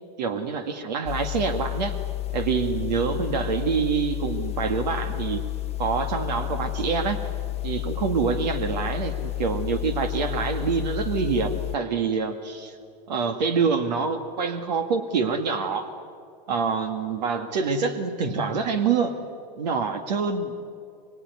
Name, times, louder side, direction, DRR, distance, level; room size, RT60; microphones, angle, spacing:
voice 1, 0.2-1.9 2.3-5.4 5.8-7.2 7.6-12.8 13.1-15.9 16.5-19.1 19.6-20.5, right 5 dB, 85° right, 8 dB, 1.9 m, -26 dB
sound 1, 1.0-11.8, left 17 dB, 30° left, 0.8 m, -31 dB
24.0 x 23.5 x 9.5 m, 2.4 s
supercardioid pair, 120°, 21 cm